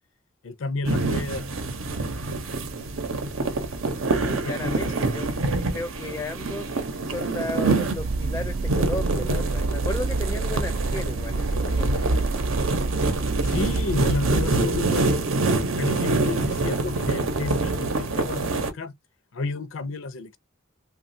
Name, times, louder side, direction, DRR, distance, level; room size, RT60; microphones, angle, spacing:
voice 1, 0.4-1.5 4.4-4.9 13.4-15.2 15.8-18.9 19.3-20.4, left 3 dB, 75° left, 0.5 m, -31 dB
sound 1, 0.8-18.7, right 2 dB, 85° right, 0.7 m, -26 dB
voice 2, 4.1-12.1, left 1 dB, 10° left, 0.4 m, -34 dB
sound 2, 7.9-14.5, right 3 dB, 55° right, 0.4 m, -28 dB
3.0 x 2.3 x 2.6 m
head